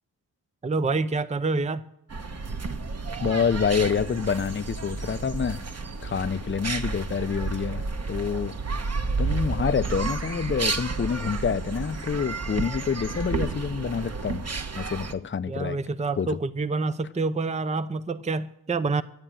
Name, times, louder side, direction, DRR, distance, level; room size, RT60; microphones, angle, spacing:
voice 1, 0.6-1.9 15.5-19.0, right 3 dB, 15° right, 0.6 m, -27 dB
sound 1, 2.1-15.1, right 4 dB, 35° right, 1.3 m, -31 dB
voice 2, 3.2-5.6 6.0-7.8 8.1-8.5 9.2-14.4 14.8-15.8 16.2-16.3, left 6 dB, 25° left, 0.7 m, -27 dB
13.0 x 8.8 x 8.9 m
supercardioid pair, 45°, 43 cm